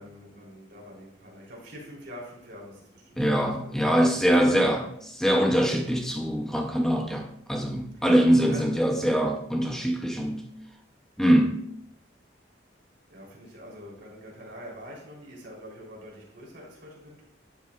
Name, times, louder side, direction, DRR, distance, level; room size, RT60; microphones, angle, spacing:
voice 1, 0.0-4.7 7.9-8.1 8.4-8.7 13.1-17.3, equal, 60° right, -3 dB, 3.4 m, -45 dB
voice 2, 3.2-10.4 11.2-11.7, equal, 5° left, 2 dB, 0.6 m, -23 dB
11.5 x 7.9 x 2.4 m, 0.73 s
head